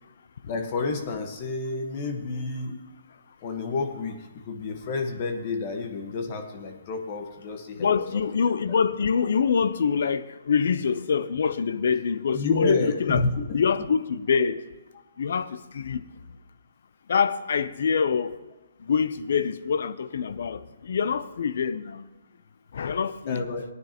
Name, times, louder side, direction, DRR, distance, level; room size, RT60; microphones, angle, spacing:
voice 1, 0.5-2.8 3.4-4.2 4.4-8.2 12.3-13.6 23.3-23.6, left 3 dB, 35° left, 1.3 m, -30 dB
voice 2, 7.8-13.3 13.5-14.6 15.2-16.1 17.1-18.4 18.8-22.1 22.7-23.4, left 6 dB, 65° left, 0.6 m, -25 dB
18.5 x 9.5 x 3.0 m
hypercardioid pair, 155°, 0 cm